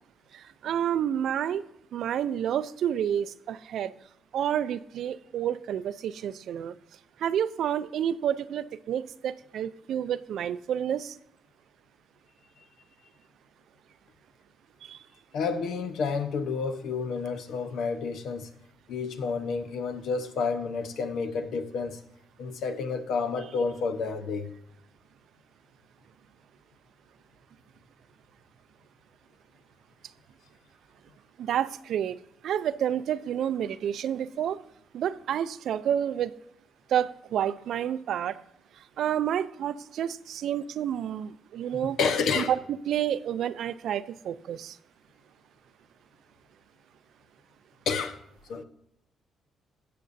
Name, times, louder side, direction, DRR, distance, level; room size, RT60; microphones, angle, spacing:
voice 1, 0.6-1.6 1.9-3.9 4.3-6.7 7.2-11.1 14.8-15.0 31.4-32.2 32.4-34.6 34.9-36.3 36.9-38.4 39.0-42.0 42.4-42.5 42.9-44.8, right 9 dB, 75° right, 0.4 m, -29 dB
voice 2, 15.3-18.5 18.9-22.0 22.4-24.5 42.0-42.5 47.9-48.2 48.5-48.6, left 5 dB, 75° left, 1.0 m, -30 dB
16.5 x 6.8 x 2.7 m
cardioid pair, 90°, 0 cm